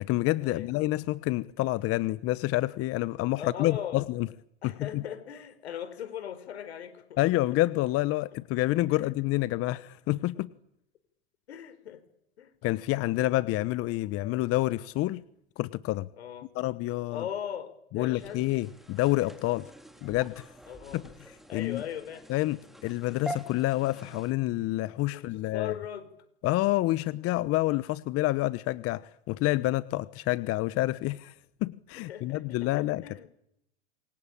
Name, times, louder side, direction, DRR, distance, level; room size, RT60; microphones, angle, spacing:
voice 1, 0.0-4.3 4.6-5.0 7.2-10.5 12.6-15.2 15.6-16.1 16.5-17.2 17.9-19.7 20.0-20.5 20.9-21.0 21.5-21.8 22.3-22.6 22.8-25.7 26.4-31.3 31.6-33.3, left 18 dB, 45° left, 16 dB, 1.1 m, -28 dB
voice 2, 3.4-4.1 4.6-7.2 8.9-9.1 11.5-12.0 12.4-12.5 16.2-16.5 17.1-18.4 20.7-21.0 21.5-22.3 25.1-26.1 32.0-33.3, left 9 dB, 85° left, 12 dB, 4.7 m, -39 dB
sound 1, 18.2-24.3, right 1 dB, ahead, 4.2 m, -45 dB
27.5 x 23.5 x 8.9 m, 0.76 s
hypercardioid pair, 100°, 32 cm